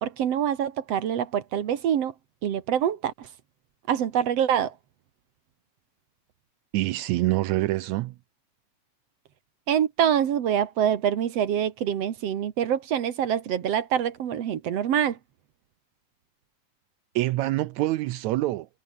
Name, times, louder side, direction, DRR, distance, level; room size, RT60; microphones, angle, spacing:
voice 1, 0.0-2.1 2.4-3.3 3.9-4.7 9.7-15.2, right 9 dB, 55° right, 2.2 m, -25 dB
voice 2, 6.7-8.1 17.1-18.7, right 17 dB, 80° right, 1.7 m, -25 dB
omnidirectional pair, 3.8 m